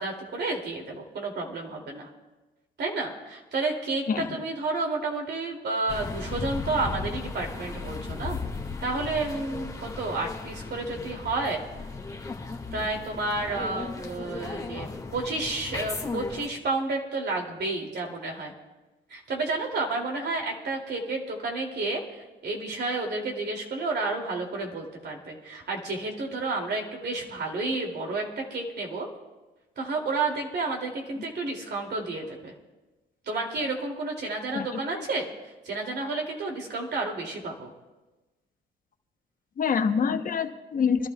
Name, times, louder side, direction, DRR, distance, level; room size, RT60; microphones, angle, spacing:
voice 1, 0.0-2.1 2.8-8.4 8.8-11.6 12.7-18.5 19.1-29.1 29.8-32.5 33.3-35.3 35.6-37.7, right 3 dB, 55° right, 0 dB, 2.7 m, -31 dB
sound 1, 5.9-16.5, left 4 dB, 15° left, 1.9 m, -36 dB
voice 2, 39.6-41.1, left 6 dB, 45° left, 7 dB, 0.9 m, -26 dB
29.0 x 12.0 x 2.3 m, 1.1 s
cardioid pair, 90°, 20 cm